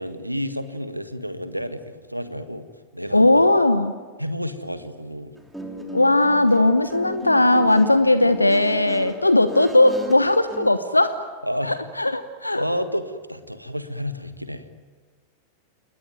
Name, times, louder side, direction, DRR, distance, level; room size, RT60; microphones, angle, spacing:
voice 1, 0.0-2.6 2.9-3.3 4.2-5.3 11.4-11.8 12.5-14.7, equal, 90° right, 11 dB, 1.5 m, -30 dB
voice 2, 3.1-3.9 5.9-11.2 11.6-12.7, left 2 dB, 85° left, 12 dB, 1.0 m, -18 dB
Guitar, 5.4-10.7, left 1 dB, 5° right, 3.4 m, -36 dB
29.5 x 20.5 x 9.4 m, 1.5 s
figure-of-eight pair, 90°, 0 cm